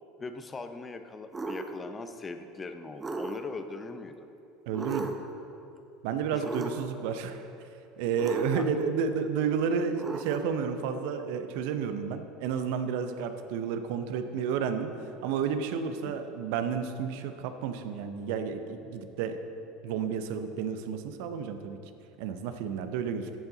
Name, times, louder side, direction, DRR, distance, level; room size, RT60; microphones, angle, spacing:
voice 1, 0.2-4.3 6.3-6.5 8.5-8.7 16.0-16.1 23.2-23.3, left 3 dB, 25° left, 8 dB, 0.8 m, -40 dB
sound 1, 1.3-1.7 3.0-3.7 4.7-5.4 6.4-7.0 8.2-8.9 10.0-10.6, right 3 dB, 20° right, 1.0 m, -36 dB
voice 2, 4.7-5.1 6.0-7.4 8.0-14.9 15.2-19.4 19.8-21.8 22.2-23.3, right 6 dB, 60° right, 8 dB, 0.7 m, -31 dB
14.0 x 8.0 x 4.0 m, 2.7 s
figure-of-eight pair, 70°, 0 cm